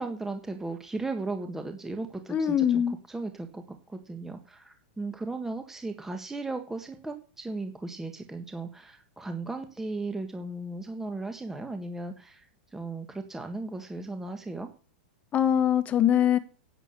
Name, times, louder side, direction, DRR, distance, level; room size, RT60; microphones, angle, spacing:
voice 1, 0.0-2.8 3.1-12.4 12.7-14.7, right 3 dB, 5° right, 6 dB, 1.5 m, -36 dB
voice 2, 2.3-3.0 15.3-16.4, left 9 dB, 25° left, 13 dB, 1.4 m, -23 dB
11.0 x 8.5 x 6.8 m, 0.38 s
hypercardioid pair, 125°, 5 cm